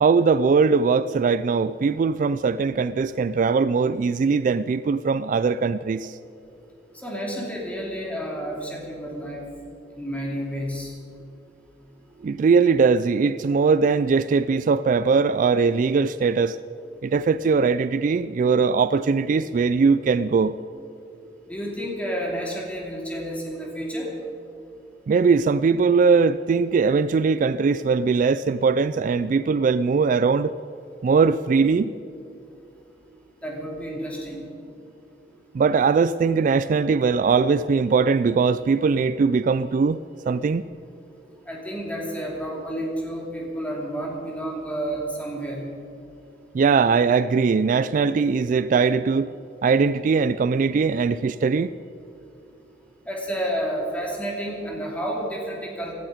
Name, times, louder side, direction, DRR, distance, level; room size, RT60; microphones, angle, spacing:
voice 1, 0.0-6.1 12.2-16.5 17.1-20.5 25.1-30.5 31.0-31.9 35.6-40.0 40.3-40.6 46.6-49.3 49.6-51.7, right 5 dB, 50° right, 0.3 m, -20 dB
voice 2, 7.0-9.5 9.9-11.0 21.5-24.2 33.4-34.5 41.5-45.7 53.0-55.9, equal, 10° left, 2.9 m, -30 dB
17.5 x 12.0 x 5.0 m
head